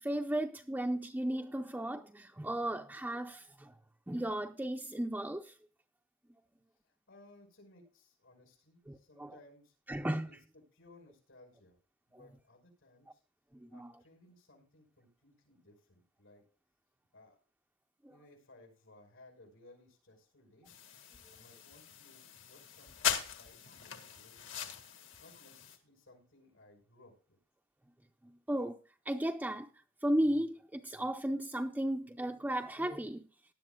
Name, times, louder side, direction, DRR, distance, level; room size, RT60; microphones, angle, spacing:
voice 1, 0.0-3.7 4.1-5.5 8.9-9.3 9.9-10.3 13.6-13.9 28.5-28.8 29.1-29.7 30.0-33.3, right 1 dB, 10° right, 0.5 m, -35 dB
voice 2, 6.8-9.8 10.2-11.8 12.1-13.2 13.7-16.4 17.1-17.4 18.1-20.7 21.3-24.7 25.2-27.4, left 2 dB, 90° left, 5.6 m, -61 dB
sound 1, 20.7-25.8, left 8 dB, 70° left, 1.9 m, -40 dB
18.5 x 11.0 x 2.3 m
head